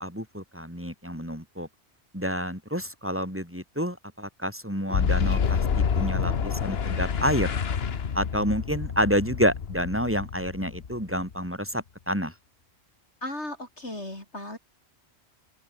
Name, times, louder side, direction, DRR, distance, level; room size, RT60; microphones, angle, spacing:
voice 1, 0.0-1.7 2.1-7.5 8.1-12.3, equal, 10° right, 7.1 m, -29 dB
Boom, 4.9-11.5, left 6 dB, 65° left, 1.4 m, -28 dB
voice 2, 13.2-14.6, left 1 dB, 85° left, 8.3 m, -36 dB
open air
omnidirectional pair, 1.1 m